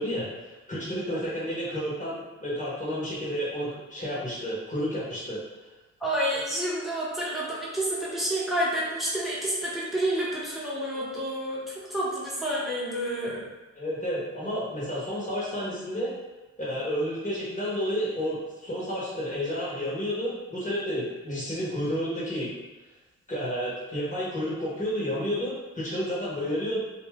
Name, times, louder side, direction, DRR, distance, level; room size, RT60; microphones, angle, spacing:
voice 1, 0.0-5.4 6.3-6.4 13.8-16.1 16.6-22.5 23.3-26.8, equal, 25° left, -8 dB, 0.9 m, -31 dB
voice 2, 6.0-13.4, right 1 dB, ahead, -7 dB, 0.9 m, -29 dB
2.7 x 2.1 x 3.4 m, 1.1 s
cardioid pair, 85°, 29 cm